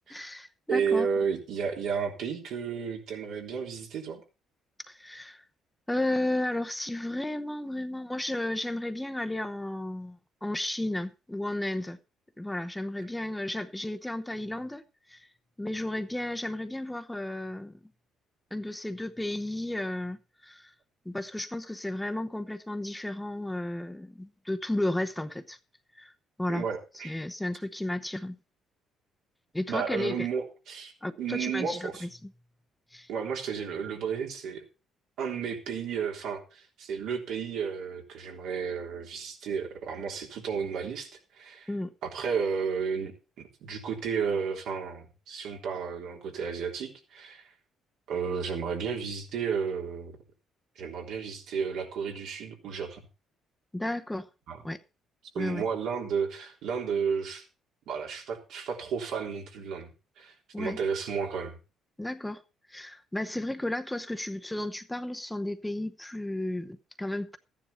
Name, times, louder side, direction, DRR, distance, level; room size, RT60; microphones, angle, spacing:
voice 1, 0.1-1.1 4.9-5.4 5.9-12.0 12.4-15.3 15.6-17.8 18.5-20.7 21.0-25.6 25.9-26.1 26.4-26.6 27.0-28.4 29.5-30.3 31.0-32.1 32.9-33.1 41.7-41.9 53.7-54.3 54.6-54.8 55.4-55.7 60.5-60.8 62.0-62.4 62.7-67.4, left 1 dB, 10° left, 0.8 m, -33 dB
voice 2, 0.7-4.2 26.5-27.1 29.7-30.9 31.2-32.0 33.1-34.6 35.2-41.7 42.0-47.5 48.1-50.2 50.8-53.0 54.5-54.6 55.3-57.4 57.9-59.9 60.2-61.5, right 6 dB, 75° right, 3.5 m, -32 dB
14.0 x 10.0 x 4.4 m
cardioid pair, 95°, 0 cm